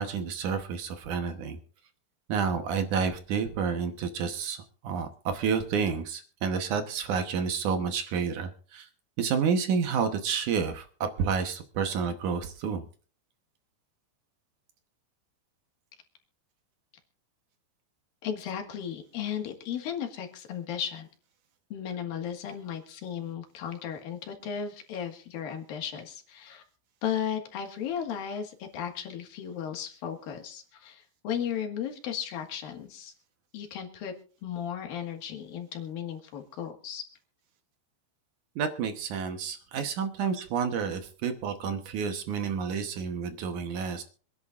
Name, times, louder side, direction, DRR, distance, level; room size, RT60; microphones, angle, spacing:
voice 1, 0.0-1.6 2.3-8.9 9.2-12.8 38.6-44.0, right 6 dB, 65° right, 7 dB, 2.1 m, -30 dB
voice 2, 18.2-21.1 21.7-26.6 27.0-33.1 33.5-34.1 34.4-37.1, left 8 dB, 65° left, 4 dB, 3.3 m, -35 dB
26.0 x 11.0 x 2.5 m, 0.41 s
omnidirectional pair, 4.6 m